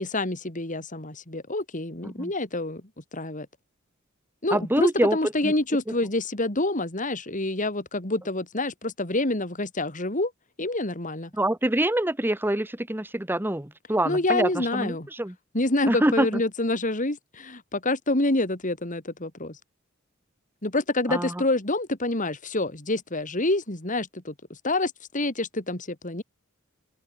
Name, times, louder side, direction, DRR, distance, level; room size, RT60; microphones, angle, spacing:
voice 1, 0.0-2.8 3.1-3.5 4.4-10.3 10.6-11.3 14.1-15.1 15.5-19.6 20.6-24.3 24.6-26.2, left 2 dB, 40° left, 3.6 m, -27 dB
voice 2, 4.5-5.2 5.4-5.5 11.3-15.3 15.9-16.4 21.1-21.4, right 1 dB, 10° right, 1.1 m, -25 dB
open air
head